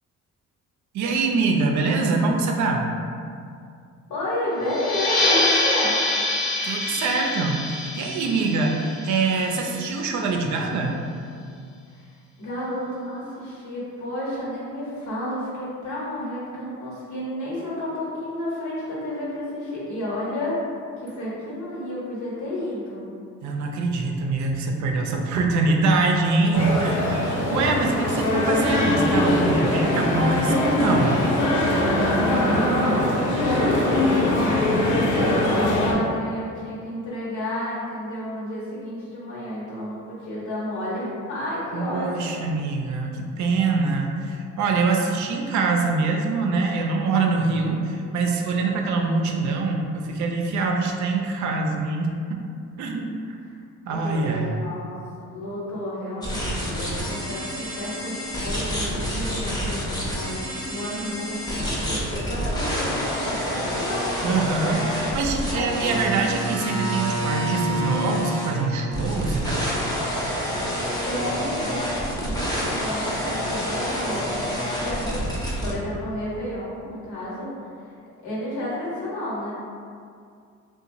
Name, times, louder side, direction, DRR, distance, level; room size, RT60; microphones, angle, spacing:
voice 1, 0.9-2.9 6.6-11.0 23.4-31.3 41.7-52.4 52.8-53.1 53.8-54.5 64.2-69.6, right 3 dB, 70° right, 2 dB, 0.4 m, -24 dB
voice 2, 4.1-6.0 11.9-12.1 12.4-20.6 21.0-23.1 32.4-42.2 53.9-64.2 64.6-65.1 65.5-65.7 71.0-74.4 74.8-75.2 75.6-77.9 78.2-79.5, left 1 dB, 70° left, -7 dB, 1.2 m, -31 dB
sound 1, 4.7-9.9, left 1 dB, 50° left, 0.8 m, -25 dB
sound 2, 26.5-35.9, left 1 dB, 90° left, 0.5 m, -22 dB
sound 3, 56.2-75.7, equal, 15° left, 0.6 m, -28 dB
2.8 x 2.2 x 2.6 m, 2.3 s
cardioid pair, 90°, 30 cm